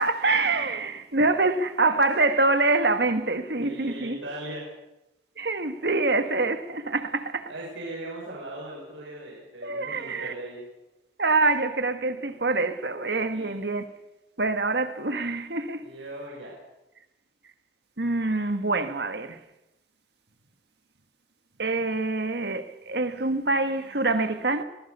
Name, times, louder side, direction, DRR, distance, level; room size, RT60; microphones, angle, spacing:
voice 1, 0.0-4.2 5.4-7.5 9.6-10.3 11.2-13.9 14.4-15.8 18.0-19.4 21.6-24.6, right 3 dB, 60° right, 1.7 m, -25 dB
voice 2, 3.6-4.7 7.5-10.6 13.3-13.5 15.8-16.6, right 1 dB, 85° right, 6.5 m, -38 dB
25.0 x 19.5 x 6.9 m
head